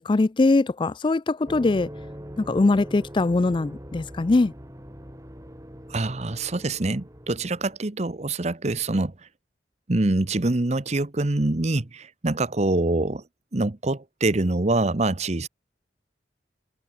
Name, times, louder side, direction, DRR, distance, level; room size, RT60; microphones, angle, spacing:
voice 1, 0.0-1.9 2.4-4.5, left 3 dB, 25° left, 0.4 m, -21 dB
sound 1, 1.4-7.8, equal, 20° right, 5.9 m, -42 dB
voice 2, 5.9-9.1 9.9-13.2 13.5-15.5, right 2 dB, 40° right, 0.9 m, -25 dB
head